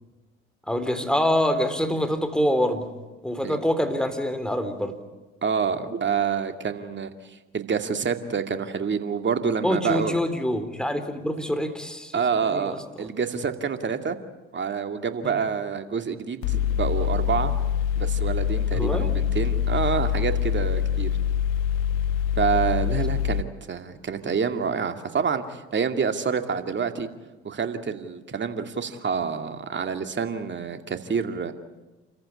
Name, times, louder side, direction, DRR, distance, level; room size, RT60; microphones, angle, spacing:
voice 1, 0.7-2.9 3.2-4.9 9.6-12.1 12.4-13.1 15.2-15.5 18.7-19.2, equal, 5° left, 8 dB, 3.8 m, -25 dB
voice 2, 5.4-7.1 7.5-10.2 12.1-14.2 14.5-17.5 18.0-21.1 22.4-27.1 27.4-31.5, right 6 dB, 40° right, 7 dB, 2.5 m, -27 dB
Mechanical fan, 16.4-23.4, left 9 dB, 80° left, 0.8 m, -25 dB
28.5 x 14.5 x 9.9 m, 1.2 s
hypercardioid pair, 55°, 29 cm